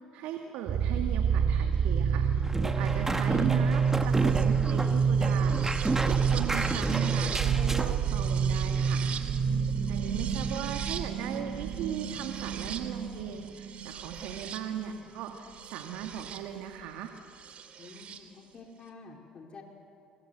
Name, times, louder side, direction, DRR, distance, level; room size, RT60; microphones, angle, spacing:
voice 1, 0.1-2.3 2.6-9.1 9.9-17.1, right 9 dB, 75° right, 4 dB, 1.9 m, -38 dB
sound 1, 0.7-16.4 17.6-18.2, right 6 dB, 55° right, 2.5 m, -28 dB
sound 2, 2.4-7.9, right 2 dB, 15° right, 1.9 m, -32 dB
voice 2, 9.5-9.9 17.8-19.6, left 4 dB, 40° left, 1 dB, 4.3 m, -50 dB
26.0 x 24.0 x 8.1 m, 2.7 s
supercardioid pair, 70°, 2 cm